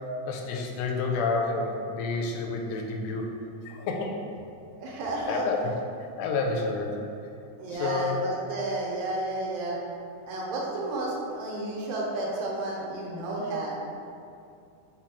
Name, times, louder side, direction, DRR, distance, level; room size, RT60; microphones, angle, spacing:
voice 1, 0.3-3.4 3.7-4.2 5.3-5.6 6.2-7.0 7.8-8.2, left 4 dB, 90° left, 2 dB, 2.1 m, -29 dB
voice 2, 4.8-5.4 7.6-9.8 10.3-13.8, right 2 dB, 80° right, -3 dB, 2.2 m, -32 dB
5.6 x 2.2 x 4.3 m, 2.5 s
omnidirectional pair, 3.5 m